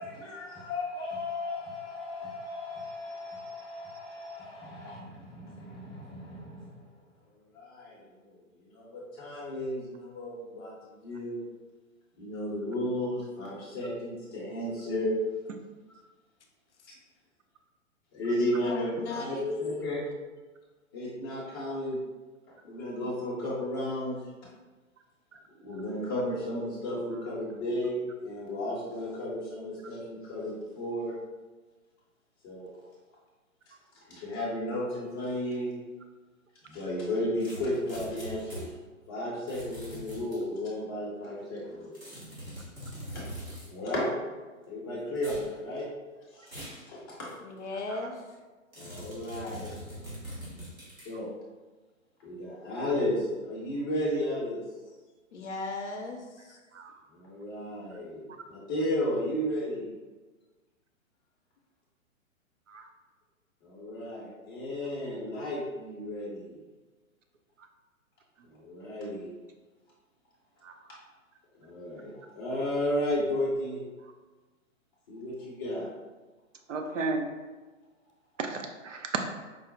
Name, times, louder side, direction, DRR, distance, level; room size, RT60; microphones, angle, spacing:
voice 1, 0.0-6.7 7.5-8.4 8.7-11.4 12.2-15.2 18.1-20.0 20.9-22.0 22.6-24.2 25.6-31.2 32.4-32.7 34.1-35.7 36.6-38.7 39.1-41.9 43.1-44.1 44.7-45.9 46.3-47.3 48.8-50.1 51.0-51.3 52.2-54.6 57.1-59.9 63.6-66.6 68.5-69.3 71.6-73.8 75.1-75.9, left 1 dB, 20° left, -5 dB, 0.5 m, -34 dB
voice 2, 18.6-20.0 47.4-48.4 55.3-56.6, left 3 dB, 60° left, 3 dB, 0.5 m, -36 dB
sound 1, 37.4-38.7 39.5-40.4 41.9-43.7 45.2-45.5 46.5-46.8 47.3-47.4 48.7-51.1, equal, 90° right, 1.5 m, -42 dB
voice 3, 76.7-77.3 78.4-79.2, right 4 dB, 65° right, 4 dB, 0.5 m, -33 dB
4.5 x 2.0 x 2.6 m, 1.3 s
figure-of-eight pair, 120°, 41 cm